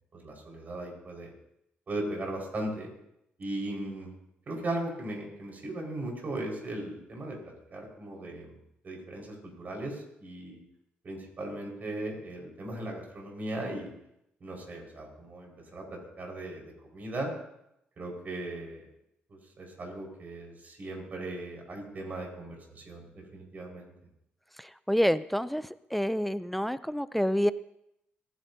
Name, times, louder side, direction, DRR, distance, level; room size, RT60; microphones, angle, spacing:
voice 1, 0.1-1.3 1.9-2.9 3.4-4.1 4.5-7.4 7.7-8.5 8.8-10.6 11.0-13.9 14.4-17.3 18.0-18.9 19.3-23.9, right 1 dB, 45° right, 0 dB, 5.0 m, -38 dB
voice 2, 24.6-27.5, equal, 5° left, 14 dB, 0.5 m, -28 dB
26.0 x 11.0 x 2.8 m, 0.80 s
cardioid pair, 70°, 4 cm